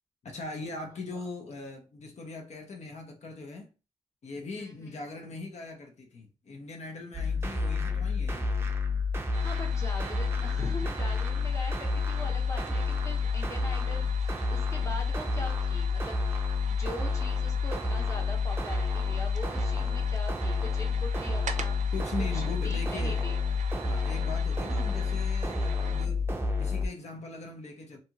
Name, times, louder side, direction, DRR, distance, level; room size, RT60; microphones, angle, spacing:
voice 1, 0.2-3.7 4.2-8.7 19.7-19.9 21.9-23.3 23.8-26.3 26.6-28.0, left 3 dB, 65° left, 0.6 m, -40 dB
voice 2, 4.6-5.0 9.4-16.2 16.7-21.9 22.3-23.4, left 1 dB, 25° left, 0.8 m, -42 dB
sound 1, 7.1-26.9, left 4 dB, 20° right, 0.5 m, -29 dB
sound 2, 9.3-26.1, right 6 dB, 80° right, 0.4 m, -45 dB
2.7 x 2.3 x 2.8 m
wide cardioid pair, 155°, 12 cm